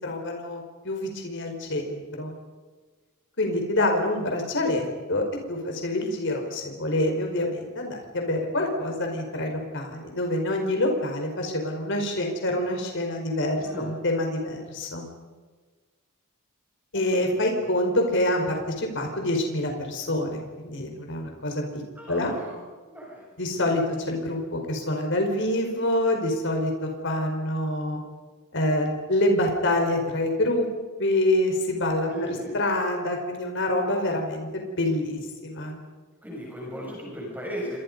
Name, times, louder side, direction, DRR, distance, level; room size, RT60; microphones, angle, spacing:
voice 1, 0.0-2.3 3.4-15.0 16.9-21.8 22.1-22.3 23.4-28.0 28.5-30.7 31.0-32.1 32.5-35.8, left 1 dB, 55° left, 3 dB, 5.0 m, -26 dB
voice 2, 16.9-17.4 22.0-22.6 22.9-23.3 32.1-32.6 36.2-37.8, equal, 10° right, -3 dB, 7.2 m, -36 dB
30.0 x 26.0 x 5.5 m, 1.4 s
head